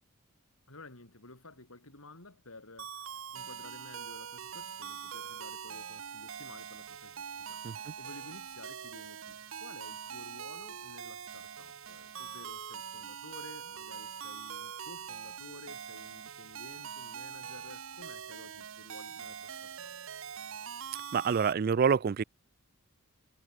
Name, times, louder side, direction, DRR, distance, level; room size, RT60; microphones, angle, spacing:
voice 1, 0.7-3.0 3.3-7.6 8.0-19.9, left 2 dB, 75° left, 4.3 m, -53 dB
sound 1, 2.8-21.5, right 8 dB, 65° right, 0.8 m, -43 dB
voice 2, 21.1-22.2, right 6 dB, 40° right, 0.3 m, -27 dB
head